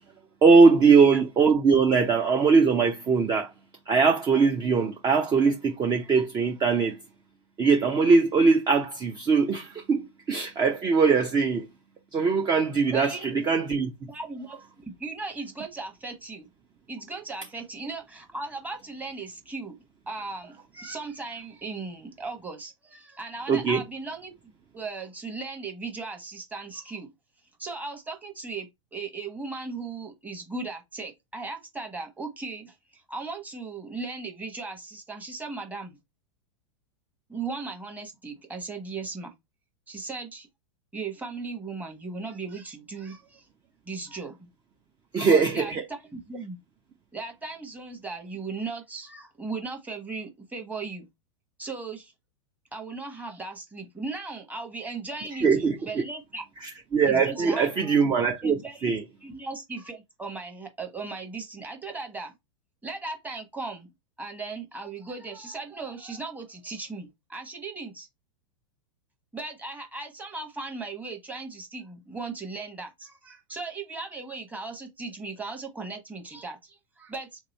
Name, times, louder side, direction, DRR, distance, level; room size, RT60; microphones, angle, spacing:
voice 1, 0.4-3.5 3.9-7.0 7.6-11.7 12.1-13.9 23.5-23.8 45.1-45.8 55.4-56.0 56.6-58.6 58.8-59.0, right 5 dB, 25° right, 0.6 m, -21 dB
voice 2, 12.9-13.3 14.1-16.5 16.9-19.8 20.1-24.3 24.7-27.1 27.6-36.0 37.3-39.3 39.9-40.5 40.9-43.5 43.9-44.5 45.1-46.6 47.1-51.1 51.6-52.1 52.7-56.4 57.0-57.9 58.4-58.9 59.2-62.3 62.8-63.9 64.2-68.1 69.3-77.4, right 3 dB, 10° right, 1.1 m, -37 dB
3.0 x 2.7 x 4.0 m
hypercardioid pair, 105°, 16 cm